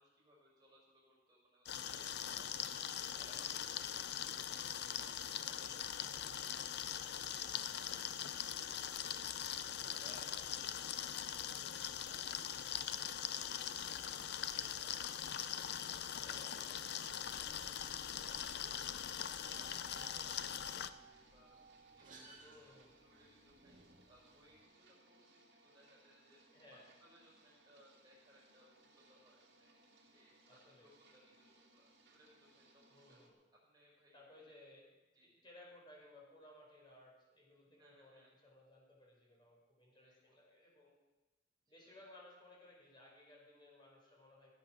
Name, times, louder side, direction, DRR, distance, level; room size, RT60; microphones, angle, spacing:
voice 1, 0.0-2.5 2.9-4.5 4.9-9.0 9.3-17.7 18.1-21.6 21.9-26.4 26.7-33.2 33.5-34.5 35.1-35.4 37.8-38.3 40.0-40.4 41.6-42.0, equal, 20° right, -5 dB, 5.5 m, -68 dB
sound 1, 1.7-20.9, left 9 dB, 60° left, 0.5 m, -42 dB
voice 2, 3.1-3.5 5.5-5.9 9.9-10.8 16.2-16.8 22.4-23.0 26.5-26.9 30.4-30.9 32.9-33.4 34.1-40.9 41.7-44.5, left 1 dB, 25° left, -2 dB, 4.5 m, -61 dB
sound 2, 17.2-24.6, right 3 dB, 45° right, 2.1 m, -60 dB
sound 3, 18.5-33.3, right 2 dB, 65° right, 2.5 m, -68 dB
16.0 x 8.5 x 6.1 m, 1.1 s
head